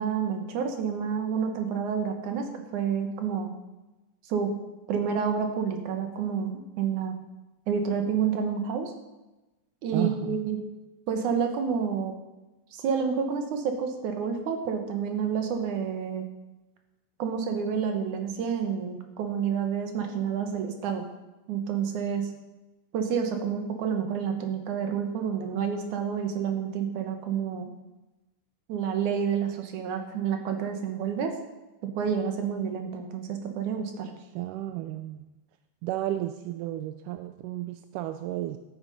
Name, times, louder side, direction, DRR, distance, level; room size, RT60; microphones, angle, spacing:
voice 1, 0.0-2.5 2.7-3.5 4.3-4.5 4.9-7.1 7.7-8.9 9.8-10.6 11.1-12.1 12.7-16.2 17.2-21.0 21.5-22.3 22.9-27.7 28.7-31.3 31.8-34.1, right 7 dB, 75° right, 5 dB, 2.9 m, -29 dB
voice 2, 9.9-10.4 34.4-35.2 35.8-38.6, right 14 dB, 90° right, 9 dB, 2.2 m, -32 dB
13.0 x 8.9 x 5.7 m, 1.1 s
omnidirectional pair, 3.6 m